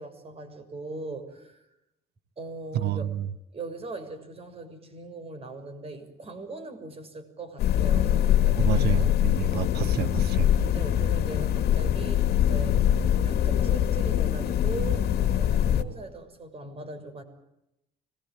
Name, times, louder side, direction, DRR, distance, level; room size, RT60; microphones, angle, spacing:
voice 1, 0.0-1.7 2.4-3.1 3.5-9.1 10.7-12.9 13.2-17.2, right 3 dB, 35° right, 6.7 m, -40 dB
voice 2, 2.7-3.3 8.6-10.6, right 11 dB, 70° right, 0.9 m, -29 dB
sound 1, 7.6-15.8, left 10 dB, 70° left, 2.4 m, -23 dB
26.0 x 21.0 x 8.9 m
cardioid pair, 110°, 17 cm